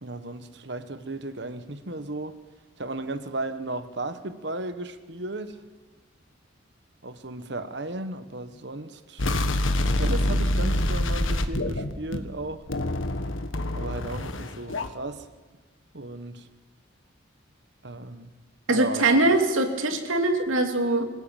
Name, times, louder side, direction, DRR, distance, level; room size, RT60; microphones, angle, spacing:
voice 1, 0.0-2.4 2.8-5.6 7.0-12.6 13.7-15.3 15.9-16.5 17.8-18.3 18.7-19.3, right 2 dB, 60° right, 11 dB, 1.3 m, -35 dB
sound 1, 9.2-12.4 12.7-14.9, left 1 dB, 80° left, 1.5 m, -26 dB
voice 2, 18.7-21.1, right 2 dB, 90° right, 5 dB, 2.8 m, -22 dB
25.0 x 15.5 x 9.0 m, 1.2 s
head